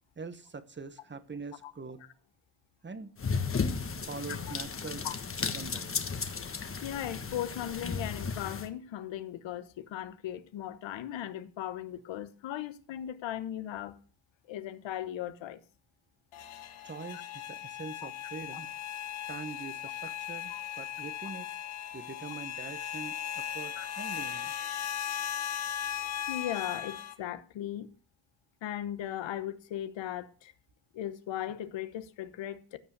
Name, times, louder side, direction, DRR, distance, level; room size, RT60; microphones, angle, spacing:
voice 1, 0.2-2.0 2.8-3.1 4.1-5.1 5.5-5.9 16.8-18.7 19.3-21.5 21.9-24.5, right 4 dB, 25° right, 1.1 m, -43 dB
sound 1, 3.2-8.7, left 5 dB, 25° left, 1.4 m, -34 dB
voice 2, 6.8-14.0 14.5-15.6 17.1-17.2 18.0-18.1 18.5-18.6 20.5-20.6 23.8-23.9 26.0-27.9 28.6-30.5 30.9-32.8, left 11 dB, 65° left, 1.2 m, -38 dB
sound 2, 16.3-27.1, left 10 dB, 85° left, 1.8 m, -37 dB
15.0 x 5.4 x 8.1 m
cardioid pair, 110°, 47 cm